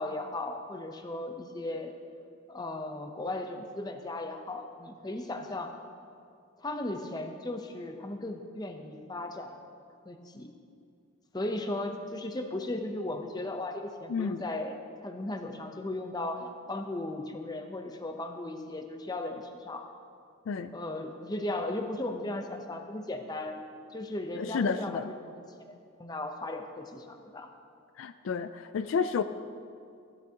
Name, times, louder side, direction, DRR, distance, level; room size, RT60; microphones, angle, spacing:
voice 1, 0.0-1.9 2.5-5.7 6.6-9.6 10.0-10.5 11.3-14.8 15.0-19.9 20.7-23.6 23.9-27.5, left 2 dB, 20° left, 5 dB, 0.7 m, -36 dB
voice 2, 14.1-14.5 20.5-20.7 24.3-25.1 28.0-29.2, left 5 dB, 65° left, 10 dB, 0.3 m, -31 dB
14.5 x 11.5 x 2.8 m, 2.4 s
head